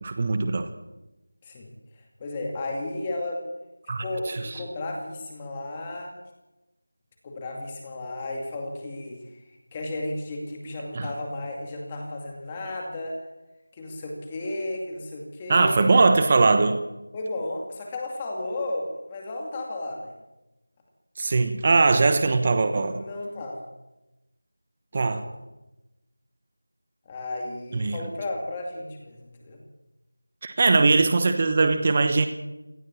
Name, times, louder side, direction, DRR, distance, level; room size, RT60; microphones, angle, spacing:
voice 1, 0.0-0.7 3.9-4.4 10.9-11.1 15.5-16.8 21.2-23.0 24.9-25.2 27.7-28.0 30.4-32.3, right 3 dB, 25° right, 9 dB, 1.1 m, -21 dB
voice 2, 2.2-3.4 4.0-6.2 7.2-9.4 9.7-13.2 13.7-15.9 17.1-20.1 22.8-23.7 25.0-25.3 27.1-29.6, left 2 dB, 15° left, 1 dB, 2.4 m, -33 dB
22.0 x 18.0 x 7.3 m, 1.0 s
figure-of-eight pair, 175°, 0 cm